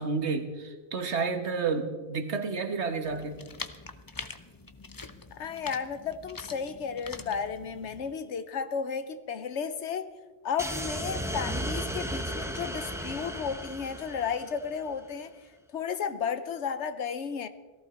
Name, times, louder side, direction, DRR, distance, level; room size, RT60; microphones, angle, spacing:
voice 1, 0.0-3.4, right 4 dB, 75° right, 1.5 m, -30 dB
sound 1, 3.0-8.2, left 3 dB, 25° left, 0.6 m, -44 dB
voice 2, 5.3-10.1 10.4-15.3 15.7-17.5, left 6 dB, 85° left, 1.2 m, -33 dB
sound 2, 10.6-14.9, right 1 dB, 5° right, 0.9 m, -35 dB
17.5 x 14.5 x 4.3 m
omnidirectional pair, 1.2 m